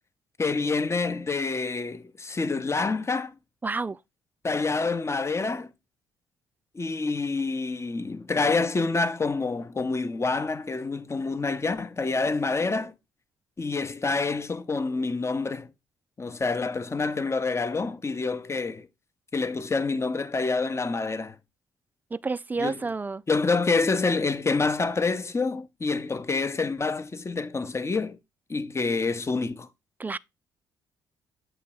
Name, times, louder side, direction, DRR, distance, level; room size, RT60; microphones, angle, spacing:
voice 1, 0.4-3.3 4.4-5.7 6.7-12.9 13.6-15.7 16.2-18.9 19.3-21.4 22.6-22.8 23.3-28.2 28.5-29.7, left 3 dB, 25° left, 0.8 m, -27 dB
voice 2, 3.6-4.0 22.1-23.2 30.0-30.2, right 3 dB, 15° right, 0.3 m, -29 dB
7.9 x 3.0 x 4.7 m
hypercardioid pair, 45°, 10 cm